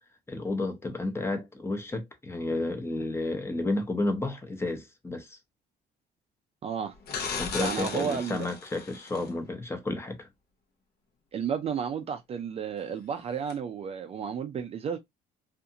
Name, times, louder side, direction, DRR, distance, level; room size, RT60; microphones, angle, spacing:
voice 1, 0.3-5.4 7.4-10.3, left 2 dB, 15° left, 0.7 m, -31 dB
voice 2, 6.6-6.9 7.6-8.5 11.3-15.0, right 7 dB, 35° right, 0.4 m, -32 dB
sound 1, 7.1-9.3 13.5-13.6, left 5 dB, 65° left, 0.8 m, -36 dB
2.5 x 2.5 x 2.7 m
cardioid pair, 110°, 17 cm